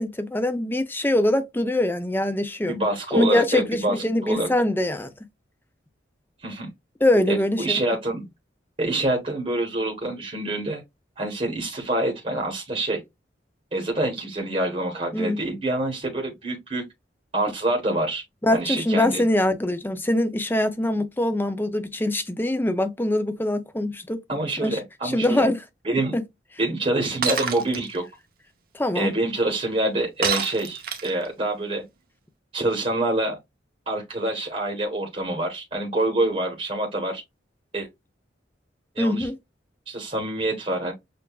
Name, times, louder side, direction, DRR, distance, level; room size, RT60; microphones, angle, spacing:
voice 1, 0.0-2.7 3.1-5.1 7.0-7.8 15.1-15.4 18.4-24.2 24.6-25.6 25.9-26.2 28.7-29.1 39.0-39.4, left 1 dB, 10° left, 0.5 m, -23 dB
voice 2, 2.7-4.5 6.4-6.7 7.3-8.3 8.8-10.8 11.2-13.0 13.7-16.8 17.3-18.2 18.5-19.2 24.3-25.5 25.8-26.1 26.6-28.0 28.9-31.8 32.5-33.4 33.9-37.2 37.7-37.9 38.9-39.3 39.9-40.9, right 2 dB, 35° right, 1.1 m, -26 dB
Shatter, 27.2-27.8 30.2-31.3, right 6 dB, 50° right, 0.8 m, -26 dB
6.7 x 2.5 x 2.3 m
head